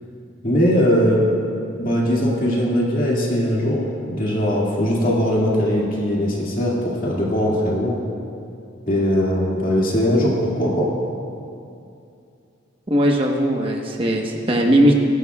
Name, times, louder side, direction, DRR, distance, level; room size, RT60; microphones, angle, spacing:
voice 1, 0.4-1.3 1.8-3.8 4.1-8.0 8.9-10.9, equal, 40° left, -4 dB, 2.2 m, -20 dB
voice 2, 12.9-14.9, equal, 25° right, 0 dB, 1.1 m, -18 dB
22.0 x 11.5 x 2.4 m, 2.5 s
head